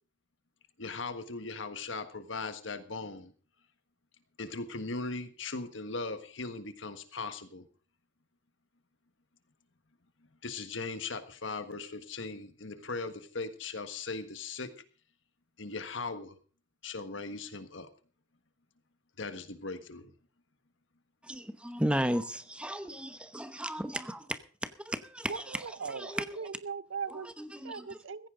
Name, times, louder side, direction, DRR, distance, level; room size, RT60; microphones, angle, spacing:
voice 1, 0.8-3.3 4.4-7.6 10.4-14.7 15.6-16.4 16.8-17.9 19.2-20.1, left 3 dB, 70° left, 1.5 m, -39 dB
voice 2, 21.3-25.6 25.9-26.4 27.4-28.0, right 1 dB, 5° right, 0.9 m, -35 dB
voice 3, 25.3-27.3 27.6-28.3, right 5 dB, 75° right, 0.7 m, -39 dB
15.5 x 15.0 x 3.8 m
head